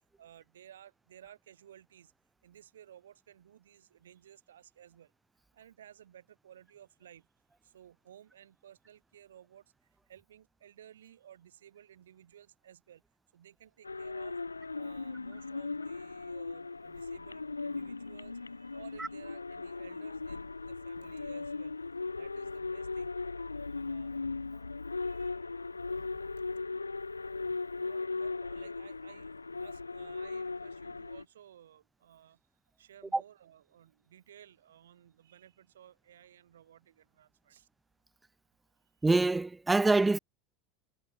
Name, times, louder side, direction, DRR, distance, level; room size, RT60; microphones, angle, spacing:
voice 1, 0.2-2.1 2.4-5.1 5.5-7.3 7.6-13.0 13.3-21.7 22.1-23.1 23.5-24.1 25.0-25.5 26.3-26.4 27.8-32.4 32.8-37.7, right 10 dB, 75° right, 4.2 m, -56 dB
sound 1, 13.8-31.2, left 3 dB, 90° left, 1.6 m, -38 dB
voice 2, 39.0-40.2, right 3 dB, 10° right, 0.6 m, -25 dB
figure-of-eight pair, 80°, 0 cm